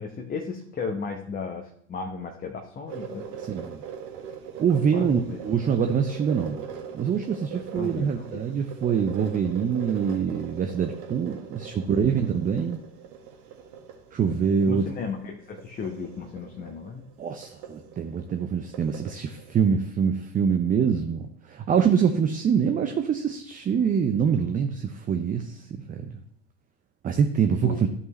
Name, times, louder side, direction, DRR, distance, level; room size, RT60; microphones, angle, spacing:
voice 1, 0.0-3.2 4.9-5.4 7.8-8.4 14.7-17.0 27.6-27.8, left 5 dB, 25° left, 2 dB, 1.0 m, -34 dB
sound 1, 2.9-19.6, right 7 dB, 55° right, 1.8 m, -41 dB
voice 2, 3.5-3.8 4.6-6.6 6.9-12.8 14.1-14.9 17.2-26.2 27.0-27.9, right 7 dB, 20° right, 7 dB, 0.7 m, -25 dB
12.5 x 5.5 x 3.2 m, 0.65 s
hypercardioid pair, 85°, 37 cm